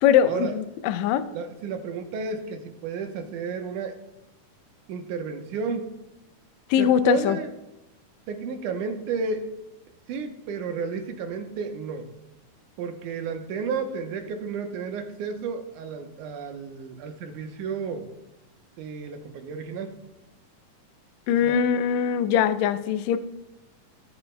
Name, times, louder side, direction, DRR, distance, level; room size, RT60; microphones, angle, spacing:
voice 1, 0.0-1.2 6.7-7.4 21.3-23.2, left 9 dB, 80° left, 11 dB, 1.6 m, -21 dB
voice 2, 1.3-4.0 4.9-5.9 6.8-7.5 8.3-9.5 10.1-12.1 12.8-18.1 18.8-20.0 21.4-21.6, right 5 dB, 80° right, 5 dB, 2.3 m, -32 dB
19.0 x 6.9 x 2.2 m, 0.94 s
omnidirectional pair, 3.7 m